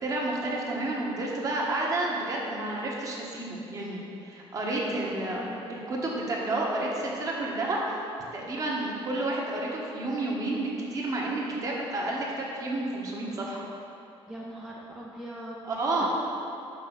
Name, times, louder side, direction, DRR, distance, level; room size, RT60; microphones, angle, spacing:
voice 1, 0.0-5.4 5.7-8.0 8.3-13.7 15.6-16.1, right 2 dB, 35° right, -3 dB, 1.2 m, -30 dB
voice 2, 4.9-5.6 14.3-15.7 16.0-16.1, right 1 dB, 5° right, -4 dB, 0.5 m, -41 dB
5.4 x 5.1 x 6.2 m, 2.8 s
cardioid pair, 155°, 10 cm